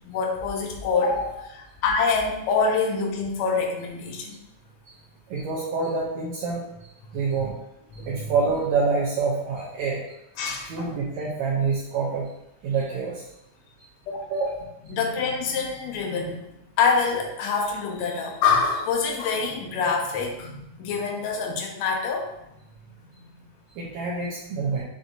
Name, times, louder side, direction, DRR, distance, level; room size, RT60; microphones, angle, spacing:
voice 1, 0.1-4.4 8.0-8.1 10.4-10.7 14.1-14.3 14.9-16.4 16.8-22.3, left 5 dB, 75° left, 1 dB, 1.7 m, -25 dB
voice 2, 5.3-6.6 7.1-7.5 8.1-10.0 10.6-12.3 12.6-13.2 14.3-14.7 23.8-24.8, right 4 dB, 80° right, -4 dB, 1.7 m, -26 dB
6.1 x 2.6 x 2.6 m, 0.84 s
omnidirectional pair, 3.6 m